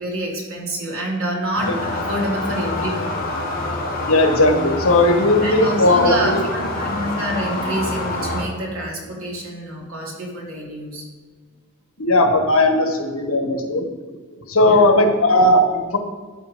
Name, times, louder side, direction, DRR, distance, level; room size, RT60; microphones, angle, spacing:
voice 1, 0.0-3.2 5.4-11.0 14.6-14.9, right 1 dB, 80° right, -3 dB, 2.6 m, -27 dB
sound 1, 1.6-8.4, left 2 dB, 45° left, 2.0 m, -26 dB
voice 2, 4.1-6.3 12.0-13.8 14.5-16.0, left 1 dB, 80° left, 5 dB, 1.4 m, -16 dB
13.0 x 4.7 x 5.1 m, 1.4 s
head